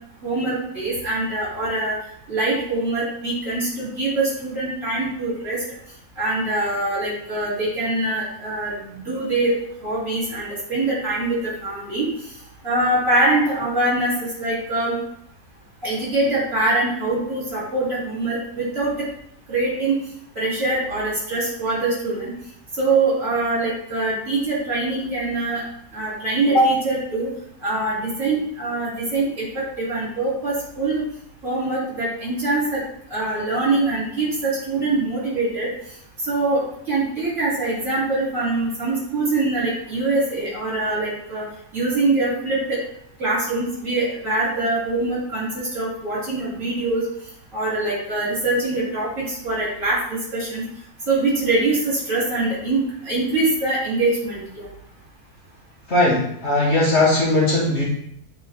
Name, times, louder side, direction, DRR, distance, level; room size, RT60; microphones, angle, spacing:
voice 1, 0.2-2.0 2.3-5.6 6.2-9.6 9.8-12.1 12.6-15.0 15.8-18.9 19.5-20.0 20.4-22.3 22.8-25.6 25.9-27.3 27.6-31.0 31.4-32.8 33.1-35.7 36.3-42.8 43.2-47.0 47.5-50.6 51.1-54.7, right 2 dB, 50° right, -7 dB, 3.4 m, -23 dB
voice 2, 55.9-57.8, left 2 dB, 45° left, -4 dB, 1.5 m, -19 dB
8.9 x 3.6 x 3.5 m, 0.72 s
omnidirectional pair, 1.7 m